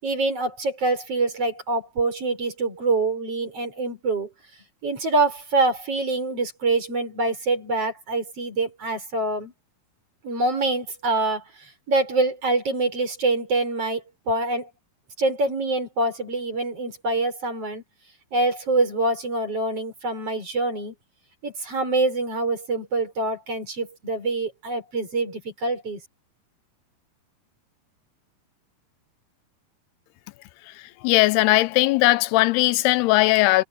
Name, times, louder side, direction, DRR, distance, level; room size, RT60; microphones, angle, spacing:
voice 1, 0.0-4.3 4.8-9.5 10.2-11.4 11.9-14.7 15.2-17.8 18.3-20.9 21.4-26.0, right 2 dB, 35° right, 6.8 m, -25 dB
voice 2, 31.0-33.6, left 18 dB, 90° left, 2.7 m, -18 dB
omnidirectional pair, 4.5 m